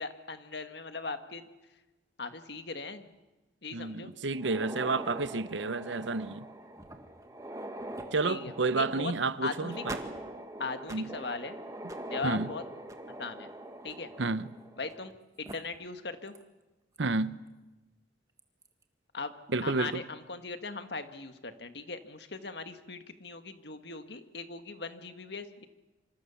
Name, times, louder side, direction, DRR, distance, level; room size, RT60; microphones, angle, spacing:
voice 1, 0.0-1.5 2.2-3.1 3.6-4.1 8.2-9.1 9.4-9.9 10.6-11.6 12.1-12.6 13.2-13.5 13.8-14.1 14.8-15.1 15.4-16.3 19.1-19.3 19.6-25.7, left 4 dB, 60° left, 1.7 m, -39 dB
voice 2, 3.7-6.5 8.1-10.0 10.9-11.1 12.2-12.5 14.2-14.5 17.0-17.4 19.5-20.0, right 3 dB, 75° right, 0.9 m, -30 dB
sound 1, 4.3-15.1 15.4-15.5 16.3-16.4 17.0-17.1 18.4-18.7, right 1 dB, 15° right, 1.6 m, -43 dB
26.5 x 25.5 x 7.1 m
head